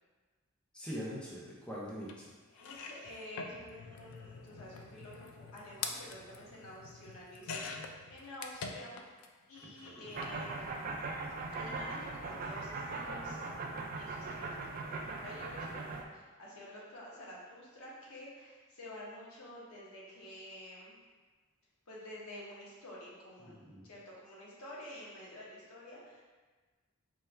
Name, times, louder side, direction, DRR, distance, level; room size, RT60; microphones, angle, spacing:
voice 1, 0.7-2.3 9.8-10.1 23.4-23.9, equal, 5° left, -7 dB, 0.6 m, -43 dB
sound 1, 2.1-2.2 2.5-9.3 9.5-10.4 11.4-11.5 11.8-11.9, left 5 dB, 70° left, 0.3 m, -45 dB
voice 2, 2.5-9.2 9.5-11.0 11.5-13.4 13.9-21.0 21.9-23.6 23.8-26.2, left 1 dB, 85° left, -6 dB, 1.0 m, -49 dB
sound 2, 10.1-16.0, right 3 dB, 40° right, 0.3 m, -40 dB
4.4 x 2.3 x 3.2 m, 1.3 s
head